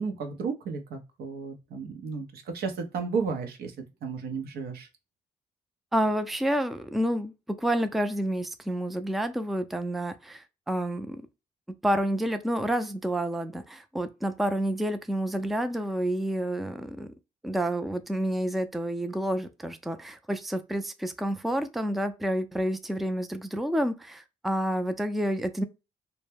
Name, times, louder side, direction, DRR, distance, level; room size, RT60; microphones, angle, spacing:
voice 1, 0.0-3.7 4.0-4.9, right 5 dB, 75° right, 0.6 m, -33 dB
voice 2, 5.9-11.2 11.8-17.1 17.4-25.6, right 1 dB, ahead, 0.4 m, -29 dB
2.2 x 2.0 x 3.1 m
supercardioid pair, 55°, 16 cm